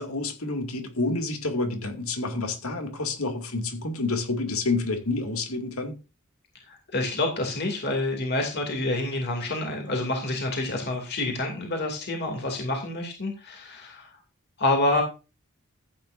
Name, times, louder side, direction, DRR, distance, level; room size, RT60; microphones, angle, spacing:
voice 1, 0.0-5.9, left 3 dB, 75° left, 2.4 m, -29 dB
voice 2, 6.7-14.1 14.6-15.0, left 2 dB, 50° left, 2.6 m, -28 dB
14.5 x 8.9 x 2.6 m
head